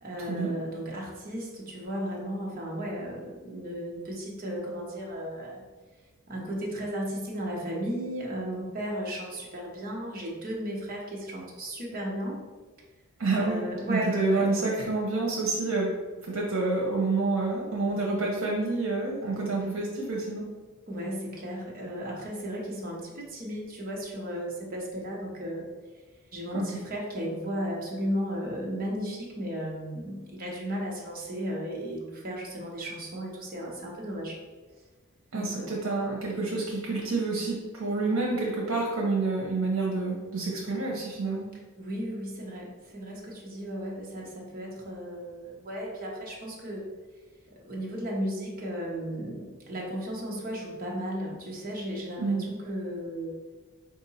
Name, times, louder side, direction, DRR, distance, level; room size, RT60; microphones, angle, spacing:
voice 1, 0.0-5.6 6.3-12.4 13.3-14.5 20.9-25.6 26.3-34.3 35.3-35.7 41.8-46.8 47.6-52.2 52.5-53.3, equal, 45° right, -3 dB, 1.1 m, -35 dB
voice 2, 13.2-20.5 26.5-26.7 35.3-41.5 52.2-52.4, right 3 dB, 90° right, -2 dB, 0.9 m, -28 dB
4.8 x 2.6 x 4.1 m, 1.3 s
head